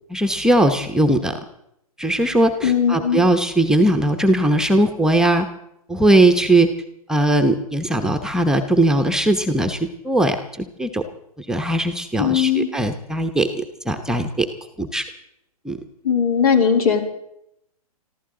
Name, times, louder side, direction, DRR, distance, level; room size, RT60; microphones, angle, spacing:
voice 1, 0.1-1.4 2.0-5.5 5.9-6.7 7.1-9.8 10.0-10.4 10.8-11.0 11.4-14.5 14.8-15.0 15.6-15.8, right 1 dB, 5° right, 5 dB, 0.9 m, -19 dB
voice 2, 2.6-3.2 12.2-12.7 16.0-17.0, left 7 dB, 70° left, 4 dB, 3.6 m, -18 dB
25.0 x 14.5 x 3.9 m, 0.77 s
hypercardioid pair, 130°, 19 cm